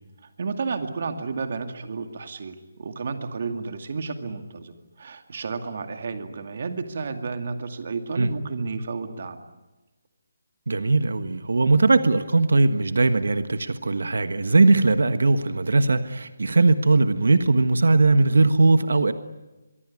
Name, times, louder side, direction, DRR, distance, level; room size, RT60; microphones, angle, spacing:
voice 1, 0.2-9.4, right 4 dB, 45° right, 6 dB, 2.4 m, -32 dB
voice 2, 10.7-19.1, right 3 dB, 90° right, 10 dB, 1.4 m, -19 dB
24.0 x 23.0 x 9.8 m, 1.1 s
hypercardioid pair, 175°, 0 cm